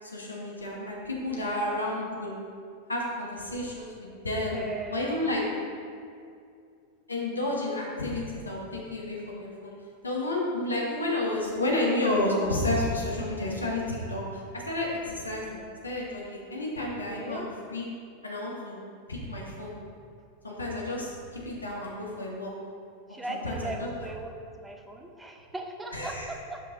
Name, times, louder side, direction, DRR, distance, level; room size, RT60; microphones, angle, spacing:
voice 1, 0.0-2.4 2.9-4.6 4.9-5.4 7.1-9.7 10.0-17.9 18.2-18.8 19.1-19.7 20.4-22.5 23.3-23.9 25.9-26.3, left 1 dB, 80° left, -3 dB, 1.1 m, -31 dB
voice 2, 1.3-2.0 4.5-5.3 16.8-17.5 23.1-26.6, right 2 dB, 10° right, 3 dB, 0.6 m, -39 dB
5.5 x 5.0 x 3.8 m, 2.4 s
figure-of-eight pair, 90°, 0 cm